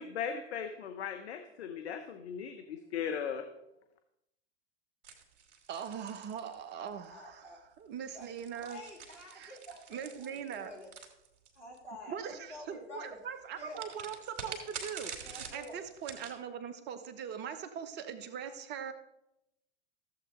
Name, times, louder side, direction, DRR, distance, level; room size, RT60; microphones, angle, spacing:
voice 1, 0.0-3.5, left 7 dB, 65° left, 6 dB, 0.9 m, -38 dB
sound 1, 5.0-7.0 8.0-11.8 13.7-16.4, right 6 dB, 55° right, 2.1 m, -46 dB
voice 2, 5.7-8.8 9.3-9.6 9.9-10.7 12.1-18.9, right 8 dB, 30° right, 9 dB, 0.9 m, -41 dB
voice 3, 7.1-7.6 8.1-8.3 8.6-10.9 11.5-13.2 13.6-13.8 15.2-15.8, left 1 dB, 85° left, -1 dB, 3.1 m, -49 dB
13.5 x 7.7 x 3.8 m, 0.87 s
figure-of-eight pair, 95°, 34 cm